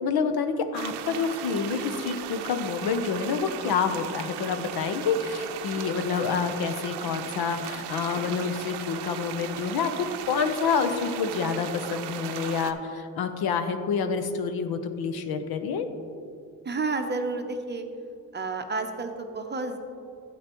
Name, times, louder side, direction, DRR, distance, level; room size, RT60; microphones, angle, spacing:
voice 1, 0.0-9.9 10.3-15.9, left 6 dB, 65° left, 9 dB, 0.8 m, -28 dB
sound 1, 0.7-12.7, right 10 dB, 75° right, 0.6 m, -37 dB
voice 2, 16.6-17.8 18.3-19.8, right 3 dB, 25° right, 6 dB, 0.7 m, -30 dB
11.5 x 8.5 x 3.0 m, 2.4 s
cardioid pair, 85°, 40 cm